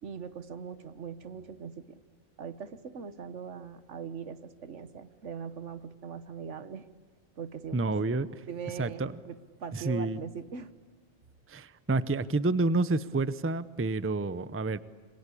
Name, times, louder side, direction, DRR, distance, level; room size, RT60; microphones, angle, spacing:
voice 1, 0.0-2.0 2.4-6.9 7.4-8.0 8.5-10.7, right 6 dB, 75° right, 13 dB, 1.5 m, -41 dB
voice 2, 7.7-8.4 8.8-9.1 9.7-10.2 11.5-14.8, right 3 dB, 15° right, 16 dB, 0.6 m, -29 dB
27.0 x 24.0 x 8.4 m, 1.5 s
omnidirectional pair, 1.2 m